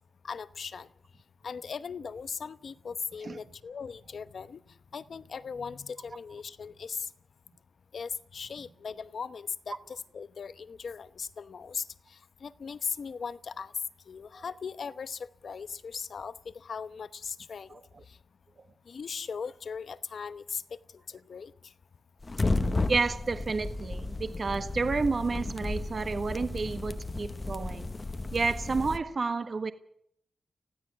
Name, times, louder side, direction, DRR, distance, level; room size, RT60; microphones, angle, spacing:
voice 1, 0.2-0.9 1.4-4.6 4.9-7.1 7.9-13.7 14.1-17.8 18.1-18.2 18.9-20.6 21.1-21.7, left 6 dB, 55° left, 0.9 m, -39 dB
voice 2, 17.7-18.0 22.9-27.9 28.3-29.7, right 4 dB, 40° right, 1.3 m, -30 dB
sound 1, 22.2-29.0, left 2 dB, 25° left, 1.0 m, -33 dB
20.5 x 16.0 x 8.5 m
wide cardioid pair, 130°, 0 cm